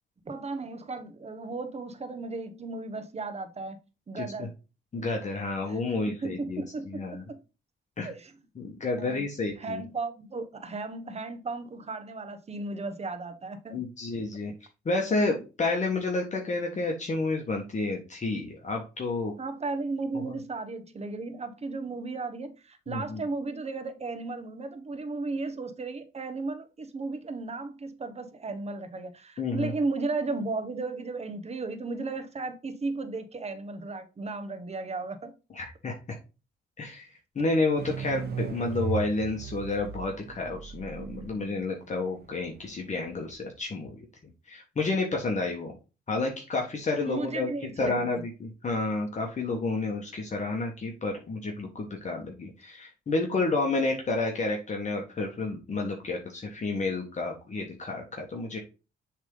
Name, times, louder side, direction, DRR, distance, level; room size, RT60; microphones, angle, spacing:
voice 1, 0.2-3.8 4.1-4.5 5.6-7.4 8.0-8.3 9.0-9.3 9.6-13.9 19.4-35.3 47.0-48.3, right 3 dB, 30° right, 1.2 m, -35 dB
voice 2, 4.9-7.2 8.0-8.1 8.6-9.8 13.7-14.5 14.8-19.3 20.2-20.4 22.9-23.2 29.4-29.7 35.5-35.9 36.8-37.0 37.3-44.0 44.5-45.7 46.1-47.5 47.8-58.6, left 3 dB, 35° left, 1.4 m, -30 dB
sound 1, 37.8-43.3, right 7 dB, 55° right, 0.8 m, -37 dB
7.2 x 3.6 x 3.7 m
cardioid pair, 90°, 20 cm